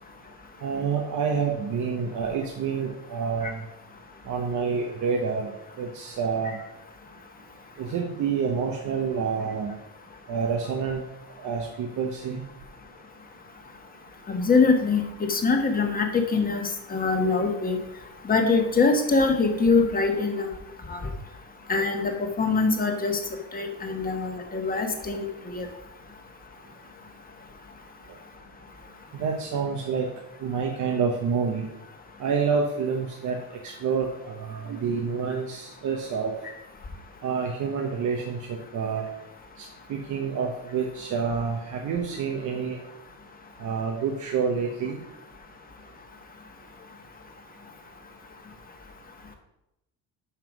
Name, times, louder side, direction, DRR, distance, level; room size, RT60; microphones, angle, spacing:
voice 1, 0.6-3.6 4.2-6.6 7.8-9.7 10.3-11.0 11.4-12.4 29.1-30.1 30.4-31.6 32.2-33.4 33.6-36.3 37.2-39.0 39.6-42.8 43.6-45.0, right 6 dB, 55° right, 1 dB, 1.1 m, -28 dB
voice 2, 14.3-16.6 16.9-17.8 18.2-20.5 20.9-21.0 21.7-23.2 23.5-25.7, left 4 dB, 25° left, 3 dB, 1.3 m, -23 dB
5.8 x 5.7 x 6.0 m, 0.87 s
cardioid pair, 110°, 35 cm